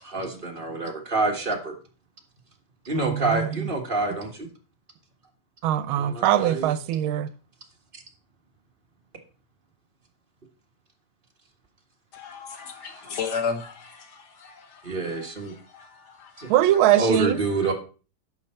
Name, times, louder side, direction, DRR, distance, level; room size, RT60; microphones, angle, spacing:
voice 1, 0.0-1.7 2.8-4.5 5.9-6.7 7.9-8.0 12.9-13.2 14.8-15.5 16.4-16.5 17.0-17.7, right 3 dB, 30° right, 1.6 m, -27 dB
voice 2, 2.9-3.7 5.6-7.3 16.5-17.4, right 12 dB, 85° right, 1.5 m, -22 dB
voice 3, 12.1-16.5, left 5 dB, 60° left, 1.6 m, -35 dB
11.0 x 6.8 x 4.3 m
omnidirectional pair, 2.2 m